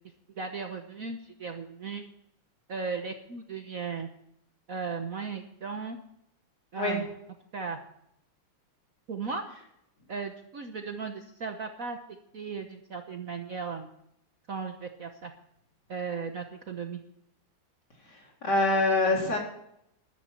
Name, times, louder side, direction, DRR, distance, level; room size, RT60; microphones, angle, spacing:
voice 1, 0.4-2.0 2.7-4.1 4.7-6.0 6.7-7.1 7.5-7.8 9.1-9.4 10.1-12.0 12.3-13.9 14.5-15.3 15.9-17.0, right 5 dB, 50° right, 5 dB, 1.3 m, -36 dB
voice 2, 18.4-19.4, left 2 dB, 50° left, -1 dB, 4.3 m, -24 dB
13.5 x 12.0 x 4.4 m, 0.77 s
omnidirectional pair, 2.3 m